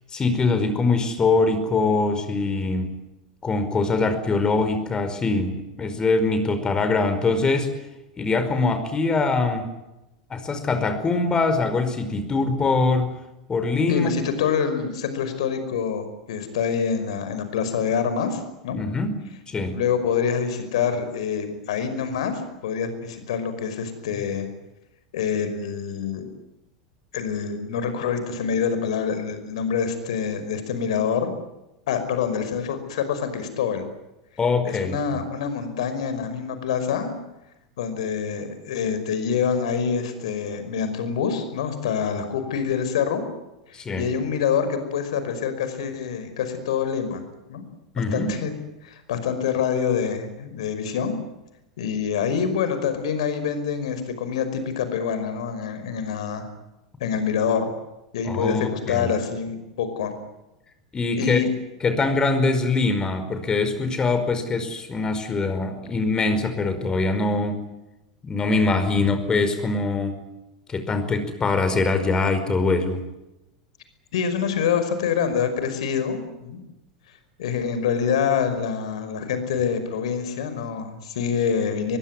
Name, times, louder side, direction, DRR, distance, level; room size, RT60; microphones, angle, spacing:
voice 1, 0.1-2.9 3.4-7.7 8.2-9.7 10.3-13.1 13.5-14.1 18.7-19.8 34.4-35.0 43.7-44.0 47.9-48.4 58.2-59.1 60.9-61.4 61.8-67.6 68.2-70.2 70.7-73.0, left 3 dB, 20° left, 9 dB, 5.1 m, -23 dB
voice 2, 13.9-18.8 19.7-24.5 25.1-26.3 27.1-31.4 31.9-33.9 34.6-37.1 37.8-43.2 44.0-47.2 47.5-47.6 48.0-48.5 48.8-51.1 51.8-56.5 57.0-57.7 58.1-60.1 61.1-61.5 74.1-76.6 77.4-82.0, left 7 dB, 65° left, 10 dB, 5.6 m, -26 dB
23.0 x 22.0 x 9.6 m, 0.94 s
figure-of-eight pair, 90°, 3 cm